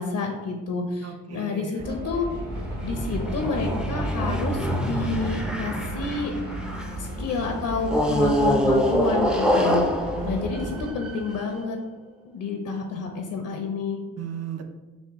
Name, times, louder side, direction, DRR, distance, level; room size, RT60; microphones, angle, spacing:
voice 1, 0.0-2.3 2.8-6.3 7.0-9.9 10.2-11.8 12.2-14.0, left 4 dB, 70° left, 3 dB, 0.6 m, -29 dB
voice 2, 1.0-1.8 10.2-10.6 14.2-14.7, right 6 dB, 55° right, 6 dB, 0.6 m, -35 dB
sound 1, 1.8-10.9, right 1 dB, 30° right, 1.0 m, -34 dB
sound 2, 2.4-7.1 7.8-11.4, equal, 5° right, 0.4 m, -26 dB
sound 3, 2.4-7.4, right 2 dB, 80° right, 1.1 m, -42 dB
6.1 x 2.1 x 3.5 m, 1.2 s
cardioid pair, 110°, 31 cm